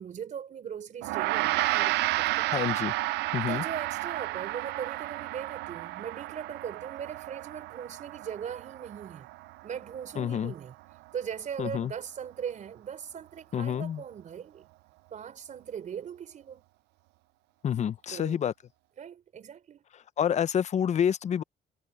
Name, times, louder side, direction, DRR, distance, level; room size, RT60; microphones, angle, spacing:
voice 1, 0.0-2.5 3.5-9.3 9.6-10.8 11.1-14.7 15.1-16.6 18.1-18.4 19.0-19.8, right 8 dB, 45° right, 3.9 m, -39 dB
Gong, 1.0-10.6, right 19 dB, 80° right, 0.5 m, -32 dB
voice 2, 2.5-2.9 3.3-3.6 10.2-10.5 11.6-11.9 13.5-14.0 17.6-18.5 20.2-21.4, left 9 dB, 45° left, 0.8 m, -28 dB
cardioid pair, 110°, 17 cm